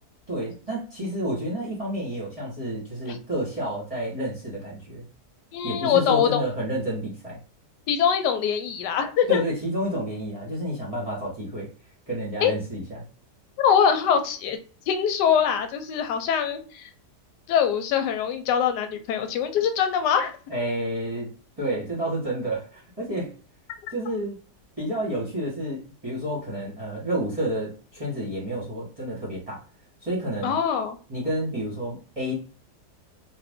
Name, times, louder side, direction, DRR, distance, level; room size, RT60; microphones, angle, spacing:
voice 1, 0.3-5.0 5.6-7.4 9.3-11.7 12.1-13.0 20.5-23.3 23.9-24.4 24.8-29.6 30.0-30.5 31.1-32.3, right 1 dB, 25° right, -5 dB, 1.0 m, -30 dB
voice 2, 5.5-6.4 7.9-9.4 12.4-12.5 13.6-14.6 14.9-16.9 17.5-20.3 30.4-31.0, left 8 dB, 85° left, 7 dB, 1.2 m, -23 dB
2.5 x 2.5 x 3.4 m, 0.39 s
omnidirectional pair, 1.8 m